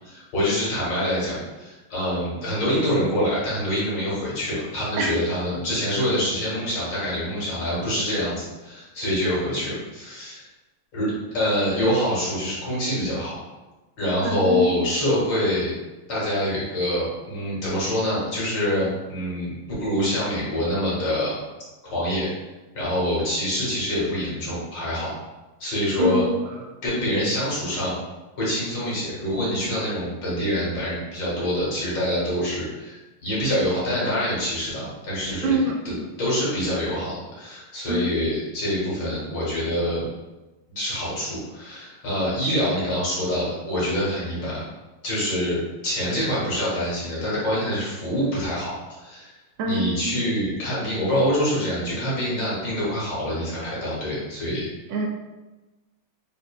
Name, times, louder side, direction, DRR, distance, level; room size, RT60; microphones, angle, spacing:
voice 1, 0.0-10.5 10.9-13.4 14.0-15.7 16.1-19.5 19.8-21.3 21.8-22.3 22.7-25.1 25.6-26.3 26.8-28.0 28.4-35.6 36.2-40.1 40.7-44.6 45.0-49.4 49.6-54.7, equal, 70° left, -7 dB, 2.1 m, -25 dB
voice 2, 14.2-14.8 26.0-26.3 35.4-36.0 37.9-38.0 49.6-50.3 54.9-55.1, right 1 dB, 75° right, 2 dB, 1.2 m, -25 dB
4.1 x 3.3 x 2.2 m, 1.1 s
omnidirectional pair, 2.1 m